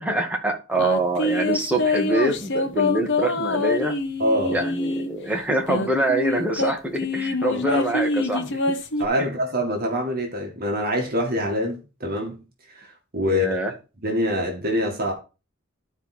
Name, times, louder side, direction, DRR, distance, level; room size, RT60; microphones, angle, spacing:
voice 1, 0.0-4.0 4.5-8.6 9.2-9.3 13.3-13.7, right 1 dB, 5° right, 1.9 m, -25 dB
sound 1, 0.7-5.1 5.7-9.1, left 2 dB, 60° left, 1.1 m, -25 dB
voice 2, 4.2-4.6 7.4-7.8 9.0-12.4 12.7-13.5 14.0-15.1, equal, 45° right, 2.0 m, -25 dB
12.0 x 4.7 x 4.4 m
head